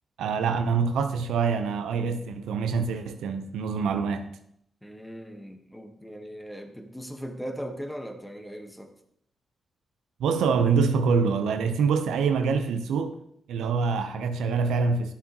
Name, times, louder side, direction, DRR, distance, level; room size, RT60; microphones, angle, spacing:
voice 1, 0.2-4.3 10.2-13.1 13.5-15.1, right 5 dB, 90° right, 0.7 m, -25 dB
voice 2, 4.8-8.9, equal, 5° left, 1.2 m, -39 dB
11.0 x 7.1 x 2.9 m
cardioid pair, 65°, 0 cm